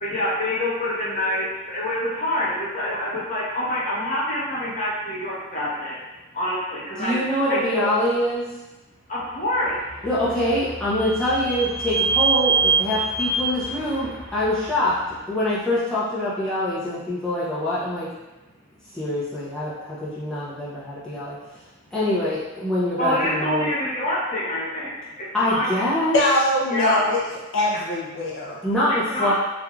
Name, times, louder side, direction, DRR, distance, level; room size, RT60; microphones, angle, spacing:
voice 1, 0.0-5.9 6.3-7.2 7.5-7.9 9.1-9.7 23.0-24.9 25.4-25.7 26.7-27.0 28.9-29.3, left 1 dB, 35° left, -7 dB, 0.8 m, -26 dB
voice 2, 7.0-8.5 10.0-15.0 15.3-18.1 18.9-21.4 21.9-23.7 25.3-26.2 28.6-29.3, left 1 dB, 5° left, -11 dB, 0.5 m, -24 dB
Vehicle / Squeak, 9.6-15.2, right 4 dB, 80° right, 1.5 m, -26 dB
voice 3, 26.1-27.2 27.5-28.6, left 1 dB, 55° left, -4 dB, 0.4 m, -22 dB
3.1 x 2.5 x 2.3 m, 1.1 s
head